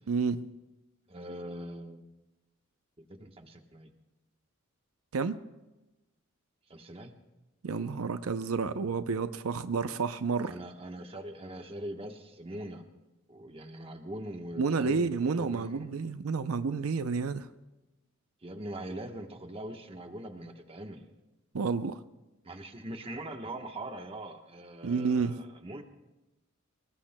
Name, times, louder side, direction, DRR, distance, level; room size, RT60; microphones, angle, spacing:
voice 1, 0.1-0.5 5.1-5.4 7.6-10.5 14.6-17.5 21.5-22.0 24.8-25.4, right 4 dB, 90° right, 11 dB, 0.6 m, -30 dB
voice 2, 1.1-2.1 3.0-3.9 6.7-7.1 10.5-12.8 13.3-15.9 18.4-21.1 22.4-25.8, right 1 dB, 25° right, 5 dB, 1.1 m, -42 dB
26.0 x 19.0 x 2.2 m, 1.0 s
head